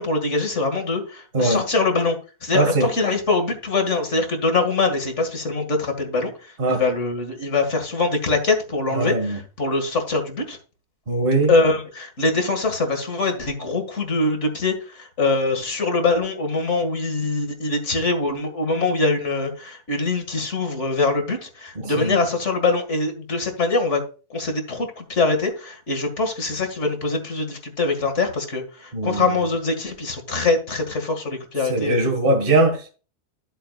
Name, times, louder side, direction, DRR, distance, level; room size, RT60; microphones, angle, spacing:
voice 1, 0.0-10.6 11.5-24.0 24.3-32.1, left 3 dB, 50° left, 2.3 m, -23 dB
voice 2, 2.5-2.9 6.6-6.8 8.9-9.4 11.1-11.5 21.8-22.2 28.9-29.3 31.7-32.9, right 2 dB, 35° right, 1.9 m, -20 dB
12.5 x 7.9 x 2.4 m
omnidirectional pair, 1.6 m